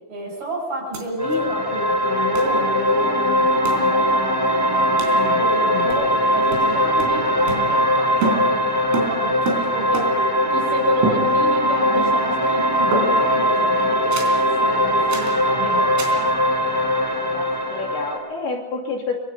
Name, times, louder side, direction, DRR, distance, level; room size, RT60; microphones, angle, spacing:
voice 1, 0.1-16.4, equal, 45° right, 0 dB, 7.5 m, -31 dB
sound 1, 0.9-1.0 1.3-1.4 2.4-2.6 3.7-3.9 5.0-5.2 5.9-6.2 6.5-10.4 11.0-11.7 12.0-12.4 12.9-13.4 14.1-14.4 15.1-15.4 16.0-16.3, right 2 dB, 90° right, 6.2 m, -29 dB
sound 2, 1.2-18.2, equal, 5° right, 6.1 m, -20 dB
voice 2, 17.3-19.2, left 3 dB, 60° left, 0 dB, 4.4 m, -29 dB
25.5 x 24.5 x 5.7 m, 1.1 s
omnidirectional pair, 5.7 m